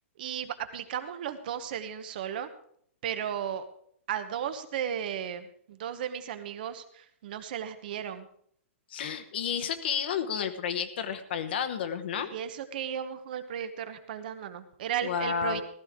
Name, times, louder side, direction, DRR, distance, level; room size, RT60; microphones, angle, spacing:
voice 1, 0.2-2.5 3.0-3.7 4.1-8.3 12.2-15.6, right 9 dB, 40° right, 10 dB, 0.9 m, -35 dB
voice 2, 8.9-12.3 15.0-15.6, left 7 dB, 50° left, 9 dB, 1.1 m, -31 dB
15.0 x 13.5 x 3.6 m, 0.65 s
hypercardioid pair, 175°, 7 cm